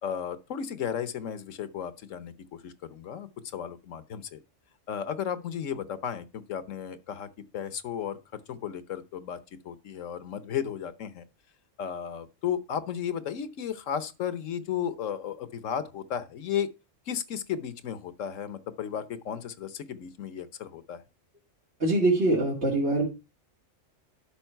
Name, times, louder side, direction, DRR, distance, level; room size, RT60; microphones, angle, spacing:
voice 1, 0.0-4.4 4.9-7.3 7.5-9.4 9.6-11.2 11.8-16.7 17.1-21.0, left 8 dB, 90° left, 1.3 m, -34 dB
voice 2, 21.8-23.1, right 2 dB, 60° right, 2.7 m, -23 dB
12.0 x 5.4 x 4.5 m
omnidirectional pair, 1.3 m